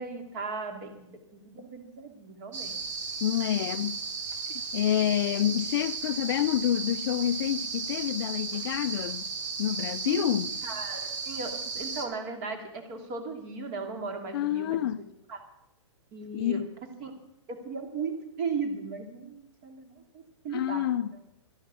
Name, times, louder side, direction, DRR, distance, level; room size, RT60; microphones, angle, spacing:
voice 1, 0.0-2.8 10.0-14.8 15.3-15.4 16.1-16.6 17.0-17.1 17.5-21.0, right 4 dB, 40° right, 2.9 m, -37 dB
sound 1, 2.5-12.1, right 4 dB, 75° right, 2.5 m, -35 dB
voice 2, 3.2-4.0 4.7-9.3 9.6-10.6 14.3-15.1 16.3-16.7 20.5-21.2, left 12 dB, 50° left, 0.5 m, -28 dB
12.5 x 12.0 x 7.0 m
hypercardioid pair, 145°, 16 cm